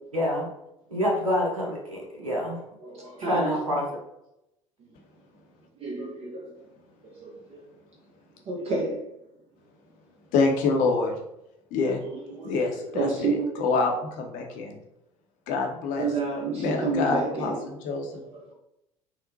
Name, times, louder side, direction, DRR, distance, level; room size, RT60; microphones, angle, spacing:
voice 1, 0.1-0.5 0.9-2.6 3.2-3.8, left 1 dB, 85° right, -2 dB, 0.6 m, -27 dB
voice 2, 2.8-3.6 5.8-6.5 7.2-7.6 8.5-9.1 12.0-13.5 16.0-17.6, right 3 dB, 35° right, -2 dB, 0.7 m, -30 dB
voice 3, 10.3-11.2 11.7-12.0 12.4-14.8 15.5-16.1 16.5-18.2, left 4 dB, 50° left, 2 dB, 0.7 m, -26 dB
3.8 x 2.1 x 2.6 m, 0.85 s
figure-of-eight pair, 65°, 17 cm